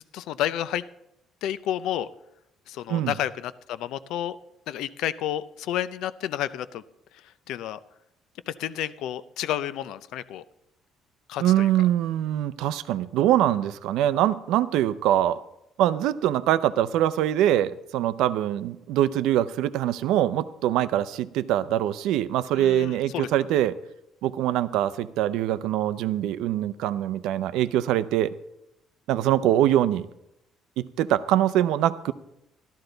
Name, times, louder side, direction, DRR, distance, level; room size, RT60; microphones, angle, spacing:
voice 1, 0.1-0.8 1.4-2.1 2.7-4.4 4.7-6.8 7.5-7.8 8.5-10.4 11.3-11.7 22.6-23.3, left 11 dB, 80° left, 15 dB, 0.5 m, -30 dB
voice 2, 11.4-15.4 15.8-23.7 24.2-28.3 29.1-30.1 30.8-32.1, right 12 dB, 85° right, 14 dB, 0.5 m, -23 dB
13.0 x 12.5 x 3.9 m, 0.85 s
cardioid pair, 125°, 0 cm